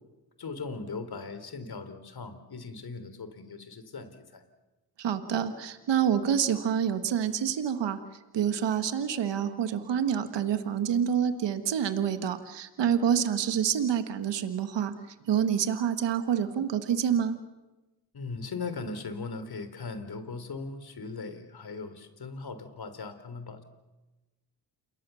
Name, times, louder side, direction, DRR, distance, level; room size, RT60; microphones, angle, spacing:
voice 1, 0.4-4.4 18.1-23.6, left 4 dB, 60° left, 10 dB, 3.9 m, -39 dB
voice 2, 5.0-8.0 8.3-14.9 15.3-17.4, right 8 dB, 80° right, 9 dB, 1.8 m, -27 dB
28.5 x 22.0 x 7.1 m, 1.1 s
supercardioid pair, 50°, 42 cm